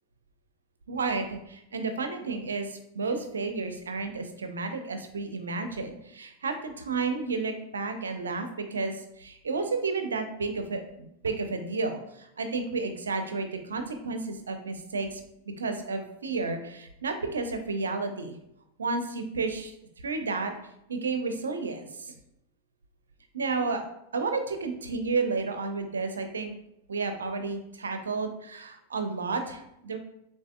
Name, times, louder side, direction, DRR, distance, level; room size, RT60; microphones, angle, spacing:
voice 1, 0.9-15.2 15.5-18.4 18.8-19.7 20.0-20.5 20.9-22.1 23.3-23.8 24.1-26.5 26.9-30.0, right 4 dB, 70° right, 7 dB, 0.5 m, -31 dB
6.8 x 2.7 x 2.3 m, 0.81 s
figure-of-eight pair, 90°, 0 cm